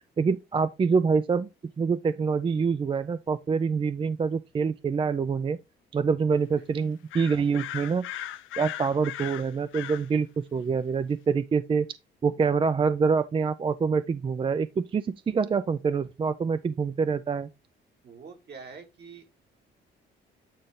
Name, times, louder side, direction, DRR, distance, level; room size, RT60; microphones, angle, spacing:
voice 1, 0.2-1.5 1.8-5.6 5.9-8.1 8.6-11.9 12.2-17.5, right 5 dB, 25° right, 0.3 m, -26 dB
sound 1, 7.1-10.1, left 12 dB, 85° left, 0.7 m, -37 dB
voice 2, 18.0-19.3, right 5 dB, 55° right, 2.0 m, -45 dB
8.9 x 3.9 x 3.6 m
cardioid pair, 90°, 20 cm